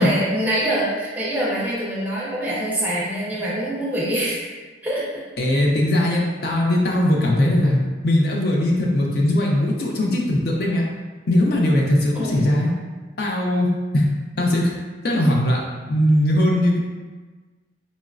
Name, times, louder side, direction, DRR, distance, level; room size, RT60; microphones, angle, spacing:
voice 1, 0.0-4.5 4.8-5.3 12.2-12.5, right 1 dB, 10° right, -6 dB, 0.5 m, -24 dB
voice 2, 5.4-7.8 8.0-10.9 11.3-12.7 13.2-14.1 14.4-14.7 15.0-16.8, left 1 dB, 55° left, -1 dB, 0.4 m, -19 dB
3.9 x 2.1 x 2.4 m, 1.3 s
head